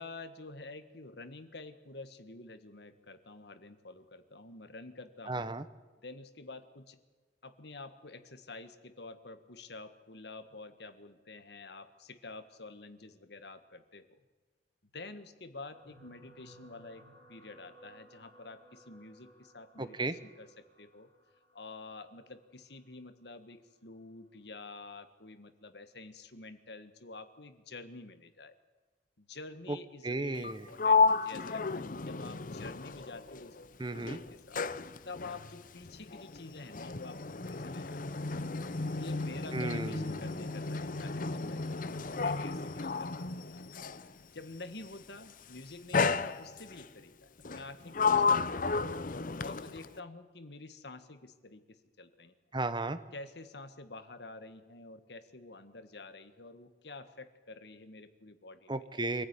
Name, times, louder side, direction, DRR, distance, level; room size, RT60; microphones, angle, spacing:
voice 1, 0.0-5.5 6.0-7.0 7.4-14.1 14.9-21.1 21.5-28.6 29.2-33.6 33.9-34.7 35.1-38.0 38.9-43.6 44.3-48.9 49.4-52.4 53.1-58.7, left 3 dB, 65° left, 10 dB, 1.6 m, -49 dB
voice 2, 5.3-5.6 19.8-20.2 29.7-29.8 30.0-30.7 33.8-34.2 39.5-40.3 52.5-53.0 58.7-59.3, right 2 dB, 25° right, 12 dB, 1.0 m, -34 dB
sound 1, 15.7-24.2 24.9-25.2 25.4-25.5, right 1 dB, 55° right, 7.9 m, -61 dB
Sliding door, 30.4-33.7 34.0-44.1 45.0-45.3 45.9-46.9 47.4-50.0, left 4 dB, 50° left, 0.8 m, -32 dB
25.0 x 15.0 x 9.8 m, 1.3 s
head